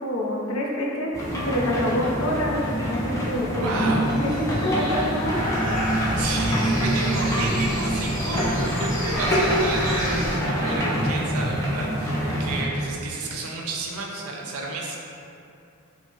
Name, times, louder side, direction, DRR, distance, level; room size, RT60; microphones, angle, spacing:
voice 1, 0.0-3.7 4.1-5.4, left 1 dB, 75° left, -3 dB, 0.5 m, -27 dB
sound 1, 1.1-12.6, equal, 15° left, 0.4 m, -25 dB
voice 2, 3.4-4.1 5.9-15.0, right 3 dB, 85° right, -1 dB, 0.5 m, -32 dB
sound 2, 4.0-10.4, equal, 5° right, 0.9 m, -32 dB
4.2 x 2.1 x 2.4 m, 2.7 s
head